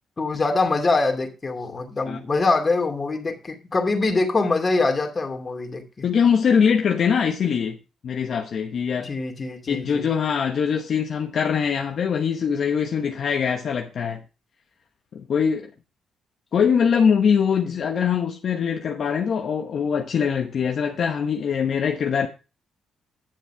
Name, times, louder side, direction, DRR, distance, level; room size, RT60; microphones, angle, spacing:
voice 1, 0.2-6.0 9.0-10.1 17.6-17.7, left 3 dB, 30° left, 2.5 m, -24 dB
voice 2, 6.0-7.8 8.0-9.1 9.7-14.2 15.1-15.7 16.5-22.3, left 7 dB, 55° left, 1.0 m, -22 dB
9.7 x 7.0 x 4.6 m
cardioid pair, 90°, 0 cm